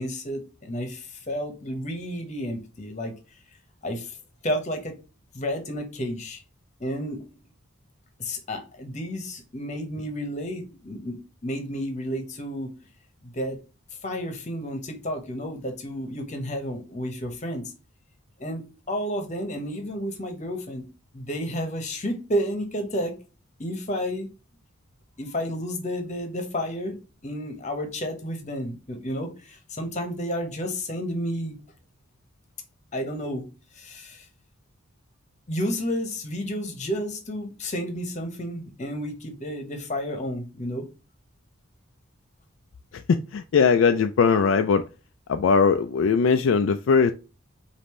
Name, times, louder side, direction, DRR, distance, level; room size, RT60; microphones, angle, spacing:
voice 1, 0.0-3.1 3.8-4.2 4.4-4.9 5.3-6.4 6.8-7.3 8.2-12.7 13.2-13.6 14.0-17.7 18.4-20.8 21.1-23.2 23.6-24.3 25.2-31.6 32.9-33.5 33.7-34.3 35.5-40.9, equal, 35° left, 1.0 m, -31 dB
voice 2, 43.1-44.8 45.3-47.1, left 5 dB, 60° left, 0.3 m, -20 dB
5.1 x 2.6 x 3.1 m
head